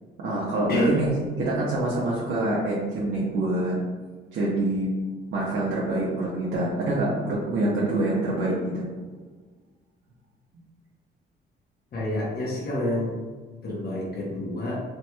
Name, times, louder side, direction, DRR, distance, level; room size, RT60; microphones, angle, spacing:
voice 1, 0.2-1.1 1.4-3.7 4.3-4.9 5.3-8.9, right 2 dB, 75° right, -6 dB, 0.7 m, -26 dB
voice 2, 0.7-1.0 7.8-7.9 11.9-13.1 13.6-14.8, left 1 dB, 55° left, -4 dB, 1.0 m, -28 dB
3.2 x 2.9 x 2.2 m, 1.4 s
cardioid pair, 90°, 20 cm